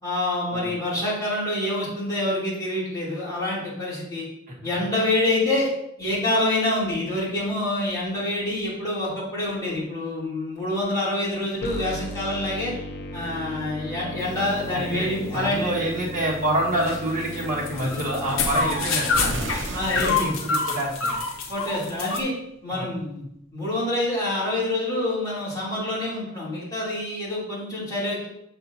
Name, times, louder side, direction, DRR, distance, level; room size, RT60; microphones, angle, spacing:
voice 1, 0.0-4.3 4.6-5.7 6.0-12.7 13.1-15.7 18.4-18.6 19.7-20.3 21.5-22.3 22.6-23.2 23.5-28.3, left 1 dB, 20° left, -9 dB, 2.9 m, -26 dB
sound 1, 11.6-19.6, left 1 dB, 55° left, 0.8 m, -36 dB
sound 2, 14.2-22.2, left 4 dB, 90° left, 0.8 m, -29 dB
voice 2, 14.7-15.1 15.3-19.5 19.9-21.2 22.8-22.9, right 1 dB, 40° right, -4 dB, 1.5 m, -27 dB
sound 3, 19.1-22.0, right 1 dB, 65° right, 0.8 m, -34 dB
7.1 x 6.6 x 2.7 m, 0.77 s
head